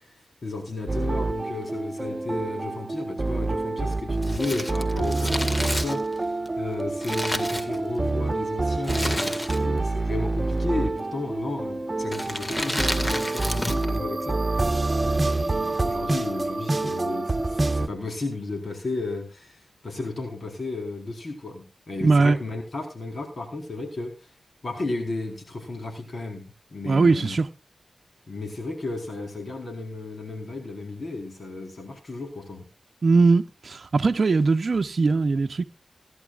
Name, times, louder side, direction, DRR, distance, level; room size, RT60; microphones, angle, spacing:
voice 1, 0.0-24.3 24.6-27.4 28.3-32.7, left 2 dB, 60° left, 4.2 m, -34 dB
sound 1, 0.9-17.9, right 2 dB, 40° right, 1.2 m, -27 dB
Crumpling crinkling, 4.2-8.2 8.8-9.9 10.1-10.2 11.0-11.4 12.0-14.0 14.2-14.3, left 1 dB, 25° left, 2.0 m, -31 dB
voice 2, 22.0-22.4 26.9-27.5 33.0-35.6, right 3 dB, 65° right, 0.7 m, -20 dB
21.5 x 11.0 x 2.4 m
cardioid pair, 45°, 0 cm